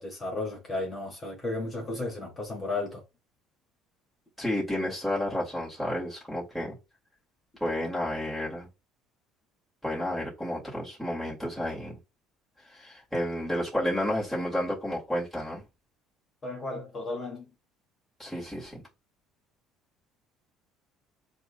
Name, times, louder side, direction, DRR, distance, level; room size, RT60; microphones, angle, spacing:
voice 1, 0.0-3.0 16.4-17.4, left 2 dB, 25° left, 2.0 m, -34 dB
voice 2, 4.4-6.8 7.6-8.7 9.8-12.0 12.7-15.6 18.2-18.8, left 1 dB, 5° right, 2.1 m, -31 dB
7.6 x 2.7 x 2.2 m
cardioid pair, 125°, 0 cm